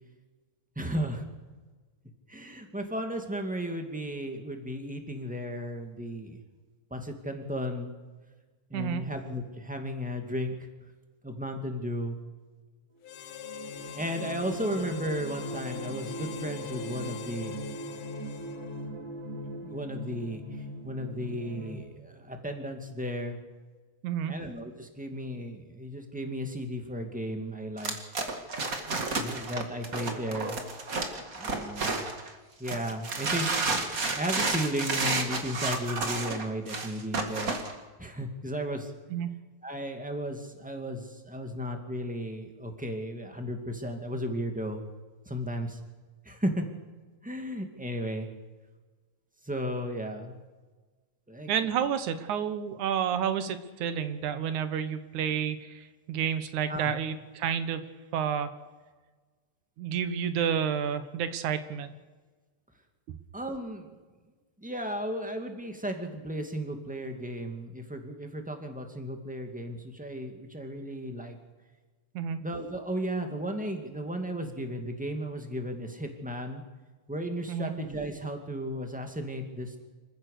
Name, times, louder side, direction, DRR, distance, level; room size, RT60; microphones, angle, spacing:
voice 1, 0.7-1.2 2.3-6.4 6.9-7.9 8.7-10.5 11.2-12.2 13.9-17.5 19.6-23.4 24.3-27.9 29.2-30.5 31.3-32.0 32.6-33.8 34.2-37.5 38.0-38.9 39.6-44.8 45.2-45.8 46.2-46.6 47.2-48.3 49.4-50.4 51.3-51.5 56.7-56.9 63.3-63.9 64.6-71.3 72.4-76.6 77.1-79.8, equal, 5° right, 4 dB, 1.7 m, -34 dB
voice 2, 8.7-9.1 24.0-24.3 39.1-39.3 51.5-57.8 58.1-58.5 59.8-61.9 63.1-63.2 72.1-72.4 77.5-77.7, right 8 dB, 85° right, 11 dB, 2.6 m, -30 dB
Harmonica, 13.0-19.0, left 11 dB, 85° left, 1.1 m, -43 dB
sound 1, 13.1-21.7, equal, 60° right, 3.8 m, -40 dB
sound 2, 27.8-32.3 32.7-37.7, right 3 dB, 30° right, 2.1 m, -31 dB
26.0 x 15.0 x 6.7 m, 1.3 s
omnidirectional pair, 3.4 m